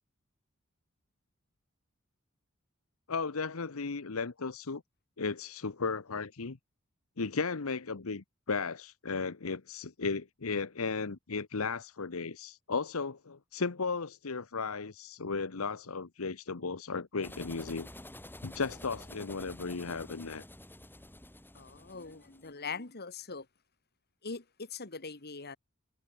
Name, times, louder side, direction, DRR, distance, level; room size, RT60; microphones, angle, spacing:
voice 1, 3.1-4.8 5.2-6.6 7.2-17.9 18.4-20.4, left 4 dB, 85° left, 1.0 m, -35 dB
sound 1, 17.2-22.5, left 1 dB, 10° left, 4.9 m, -49 dB
voice 2, 21.5-23.5 24.2-25.6, left 4 dB, 50° left, 2.2 m, -42 dB
head